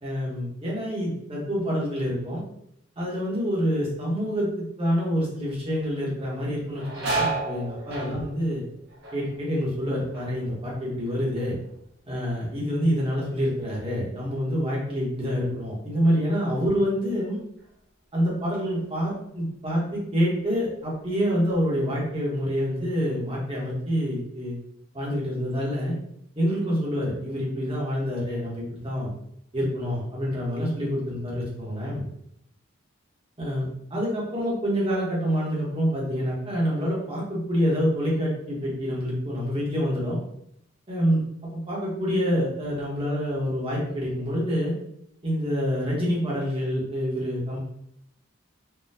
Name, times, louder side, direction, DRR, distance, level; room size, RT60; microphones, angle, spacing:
voice 1, 0.0-2.4 3.0-8.6 9.1-11.6 12.1-17.4 18.1-24.6 24.9-25.9 26.4-29.1 29.5-32.0 33.4-40.2 40.9-41.2 41.5-44.7 45.2-47.6, equal, 30° right, -4 dB, 1.0 m, -27 dB
sound 1, 5.7-5.9 6.2-11.8 12.1-12.7 13.2-16.1 16.5-16.6 17.6-17.8 18.2-19.3 19.8-19.9 20.5-21.2 21.5-22.7, right 3 dB, 65° right, 1.2 m, -36 dB
3.7 x 2.2 x 2.7 m, 0.76 s
head